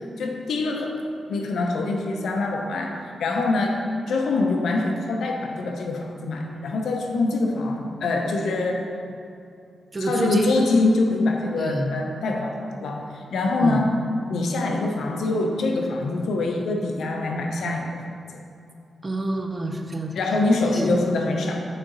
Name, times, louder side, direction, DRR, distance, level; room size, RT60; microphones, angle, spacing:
voice 1, 0.0-8.9 10.0-14.0 14.3-18.0 18.3-18.4 20.1-21.7, left 2 dB, 80° left, 2 dB, 0.7 m, -24 dB
voice 2, 9.9-10.6 11.6-11.9 13.6-13.8 19.0-20.2 20.7-21.0, right 2 dB, 25° right, 3 dB, 0.6 m, -26 dB
8.6 x 4.0 x 3.9 m, 2.5 s
cardioid pair, 105°, 0 cm